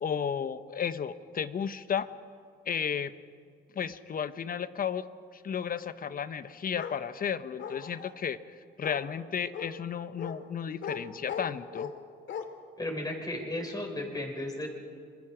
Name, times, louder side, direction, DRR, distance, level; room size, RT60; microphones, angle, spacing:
voice 1, 0.0-2.1 2.7-3.1 3.7-5.0 5.3-8.4 8.8-11.9, left 7 dB, 45° left, 12 dB, 1.0 m, -33 dB
Bark, 6.7-7.0 7.6-8.1 8.8-9.0 9.5-9.7 10.2-10.4 10.8-11.0 11.3-11.9 12.3-12.4, left 8 dB, 70° left, 2.1 m, -37 dB
voice 2, 12.8-14.7, left 1 dB, 20° left, 2 dB, 5.7 m, -34 dB
27.5 x 22.0 x 5.0 m, 2.1 s
cardioid pair, 90°, 20 cm